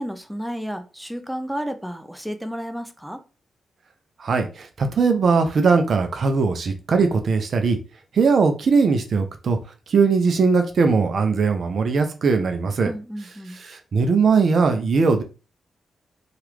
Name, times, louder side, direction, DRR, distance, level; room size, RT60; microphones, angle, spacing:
voice 1, 0.0-3.2 12.8-13.6, equal, 5° right, 0.6 m, -32 dB
voice 2, 4.2-7.8 8.1-9.6 9.9-12.9 13.6-15.2, right 4 dB, 65° right, 0.5 m, -20 dB
2.9 x 2.4 x 3.3 m
supercardioid pair, 45°, 0 cm